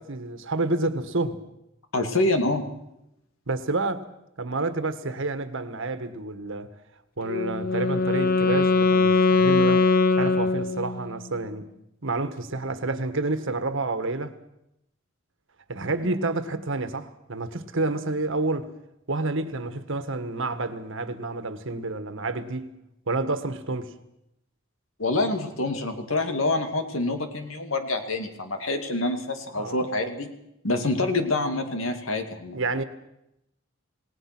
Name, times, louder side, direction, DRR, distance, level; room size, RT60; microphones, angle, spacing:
voice 1, 0.0-1.4 3.5-4.1 4.4-6.7 7.2-9.9 10.1-11.7 12.0-14.3 15.7-18.7 19.1-22.7 23.1-23.9 29.6-29.8 32.5-32.8, right 2 dB, 65° right, 1.6 m, -29 dB
voice 2, 1.9-2.6 25.0-30.3 30.6-32.6, left 2 dB, 70° left, 2.5 m, -26 dB
Wind instrument woodwind instrument, 7.3-11.2, left 3 dB, 45° left, 1.0 m, -21 dB
28.0 x 18.0 x 6.1 m
head